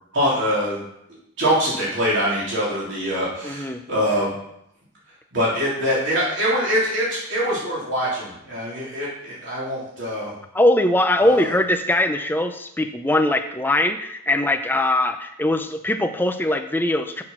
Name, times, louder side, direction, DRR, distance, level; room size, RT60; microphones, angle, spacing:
voice 1, 0.1-0.8 1.4-4.3 5.3-10.3 11.2-11.5, equal, 55° right, -7 dB, 3.6 m, -23 dB
voice 2, 3.4-3.8 10.5-17.2, left 1 dB, 10° left, 7 dB, 0.5 m, -21 dB
7.9 x 6.3 x 5.9 m, 0.76 s
head